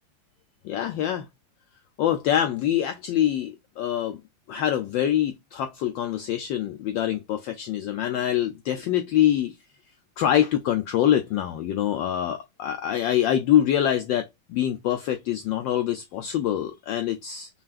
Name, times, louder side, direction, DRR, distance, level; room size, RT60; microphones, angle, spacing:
voice 1, 0.6-1.3 2.0-4.2 4.5-9.5 10.2-17.5, left 11 dB, 75° left, 1.1 m, -25 dB
5.6 x 2.4 x 2.3 m
omnidirectional pair, 2.4 m